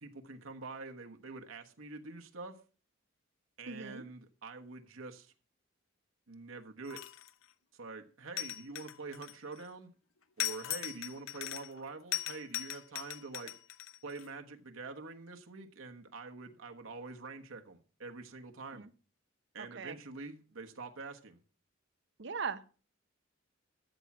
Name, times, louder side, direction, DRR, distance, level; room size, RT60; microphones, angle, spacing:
voice 1, 0.0-2.6 3.6-5.3 6.3-7.0 7.7-9.9 10.4-13.5 14.0-18.9 19.5-21.4, right 3 dB, 85° right, 1.3 m, -46 dB
voice 2, 3.7-4.0 18.7-18.9 19.6-20.0 22.2-22.6, right 5 dB, 60° right, 0.8 m, -39 dB
sound 1, 6.8-7.4 8.4-9.7 10.4-11.8 12.1-14.3, left 13 dB, 85° left, 0.9 m, -39 dB
13.0 x 7.2 x 6.1 m
head